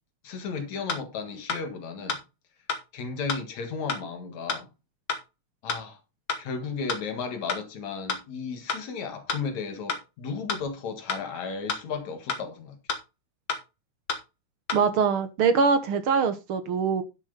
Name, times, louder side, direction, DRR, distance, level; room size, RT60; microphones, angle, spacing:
voice 1, 0.2-2.2 2.9-4.7 5.6-6.0 6.4-12.8, left 5 dB, 65° left, 2.9 m, -34 dB
sound 1, 0.9-1.0 1.5-1.6 2.1-2.2 2.7-2.8 3.3-3.4 3.9-4.0 4.5-4.6 5.1-5.2 5.7-5.8 6.3-6.4 6.9-7.0 7.5-7.6 8.1-8.2 8.7-8.8 9.3-9.4 9.9-10.0 10.5-10.6 11.1-11.2 11.7-11.8 12.3-12.4 12.9-13.0 13.5-13.6 14.1-14.2 14.7-14.8, left 5 dB, 50° left, 2.1 m, -28 dB
voice 2, 14.7-17.0, right 5 dB, 60° right, 1.5 m, -23 dB
11.0 x 7.1 x 4.0 m
omnidirectional pair, 3.6 m